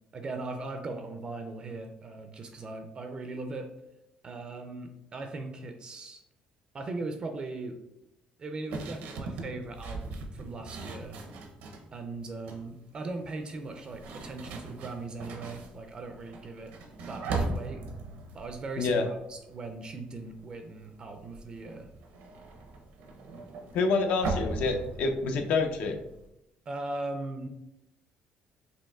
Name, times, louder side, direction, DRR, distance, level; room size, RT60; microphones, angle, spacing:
voice 1, 0.1-3.7 4.2-6.2 6.7-7.8 8.4-11.2 11.9-16.7 17.1-17.8 18.3-21.9 26.7-27.5, right 3 dB, 35° right, 5 dB, 0.4 m, -39 dB
sound 1, 8.7-11.9 12.3-12.7 13.6-19.8 20.1-20.5 20.8-26.3, right 3 dB, 85° right, 0.7 m, -39 dB
voice 2, 23.7-26.0, left 4 dB, 70° left, 5 dB, 0.6 m, -27 dB
5.2 x 3.0 x 2.3 m, 0.84 s
cardioid pair, 125°, 3 cm